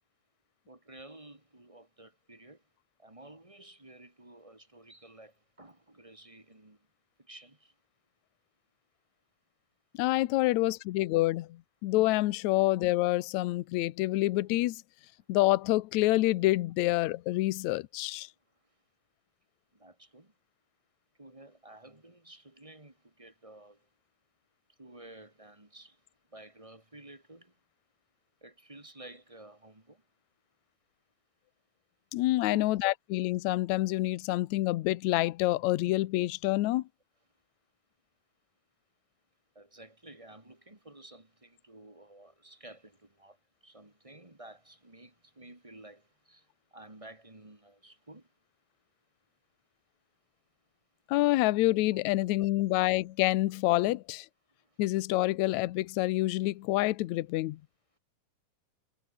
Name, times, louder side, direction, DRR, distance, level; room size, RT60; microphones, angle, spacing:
voice 1, 0.7-2.6 3.0-6.9 7.2-7.7 19.7-20.3 21.2-23.9 24.8-26.0 26.3-27.6 28.4-30.0 32.5-32.7 39.5-48.3 51.9-52.0 54.6-54.8, right 1 dB, 10° right, 2.1 m, -52 dB
voice 2, 10.0-14.8 15.3-18.3 32.1-36.9 51.1-54.3 54.8-57.6, left 18 dB, 75° left, 1.9 m, -27 dB
omnidirectional pair, 3.7 m